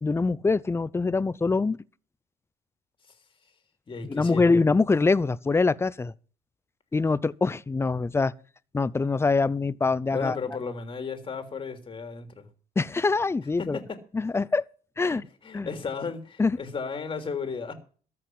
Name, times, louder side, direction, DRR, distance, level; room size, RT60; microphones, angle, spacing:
voice 1, 0.0-1.8 4.1-6.1 6.9-8.3 8.7-10.4 12.8-13.8 14.1-14.6 15.0-15.2 15.5-15.7 16.4-16.6, left 3 dB, 15° left, 0.6 m, -24 dB
voice 2, 3.9-4.5 10.1-12.5 13.6-13.8 15.0-17.7, left 5 dB, 30° left, 3.2 m, -34 dB
14.0 x 6.0 x 9.6 m
cardioid pair, 110°, 17 cm